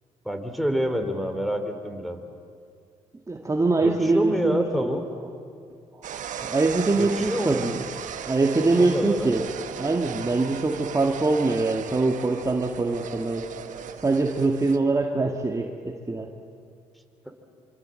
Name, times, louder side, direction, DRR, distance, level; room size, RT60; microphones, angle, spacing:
voice 1, 0.3-2.2 3.8-5.0 7.0-7.6 8.8-9.3, equal, ahead, 6 dB, 3.6 m, -27 dB
voice 2, 3.3-5.0 6.4-7.8 8.3-9.4 9.7-13.5 14.0-16.3, right 3 dB, 25° right, 2 dB, 2.0 m, -23 dB
sound 1, 6.0-14.8, right 8 dB, 65° right, 1.5 m, -37 dB
25.5 x 25.5 x 7.7 m, 2.3 s
supercardioid pair, 65°, 14 cm